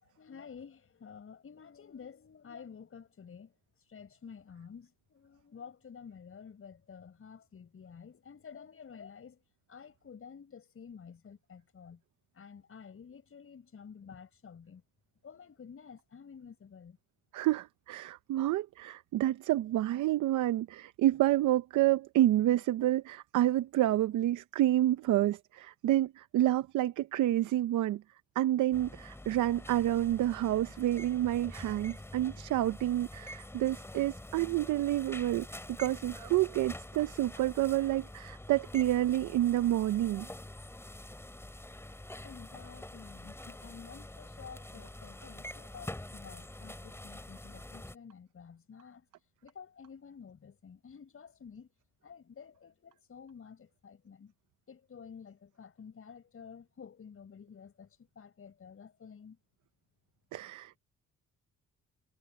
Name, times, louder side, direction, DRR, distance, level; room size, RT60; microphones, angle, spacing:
voice 1, 0.0-3.5 3.9-9.4 9.7-12.0 12.3-14.8 15.2-17.0 42.2-49.1 49.4-51.7 52.0-54.3 54.7-59.4, left 6 dB, 45° left, 6.3 m, -51 dB
voice 2, 17.3-28.0 28.4-40.3 60.3-60.8, right 14 dB, 80° right, 0.8 m, -29 dB
sound 1, 28.7-48.0, left 1 dB, 10° left, 3.3 m, -46 dB
cardioid pair, 90°, 30 cm